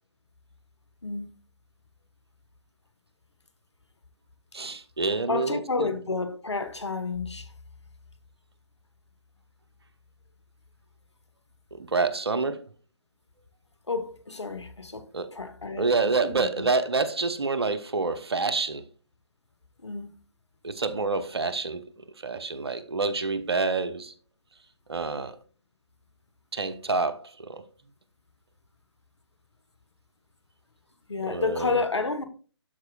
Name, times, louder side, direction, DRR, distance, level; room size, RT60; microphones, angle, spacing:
voice 1, 4.5-5.9 11.7-12.7 15.1-15.3 15.8-18.9 20.6-24.1 24.9-25.4 26.5-27.6 31.3-31.7, right 3 dB, 65° right, 0.8 m, -28 dB
voice 2, 5.3-7.5 13.9-16.7 19.8-20.1 31.1-32.2, left 4 dB, 75° left, 1.4 m, -30 dB
12.5 x 4.5 x 2.4 m
figure-of-eight pair, 145°, 15 cm